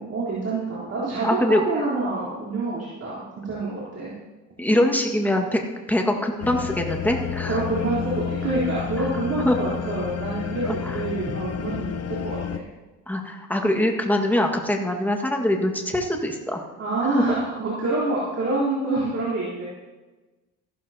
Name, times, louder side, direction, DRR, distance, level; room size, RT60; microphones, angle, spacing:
voice 1, 0.0-1.4 1.7-4.1 7.5-12.2 12.5-12.6 16.8-19.6, right 2 dB, 50° right, -9 dB, 4.0 m, -27 dB
voice 2, 1.2-1.6 4.6-5.6 5.9-7.6 9.0-9.1 9.4-9.6 10.6-11.0 13.1-16.6 17.3-17.4, left 1 dB, 5° left, 2 dB, 1.8 m, -23 dB
sound 1, 6.4-12.6, left 8 dB, 55° left, 0.8 m, -30 dB
15.0 x 12.5 x 2.9 m, 1.2 s
cardioid pair, 90°, 30 cm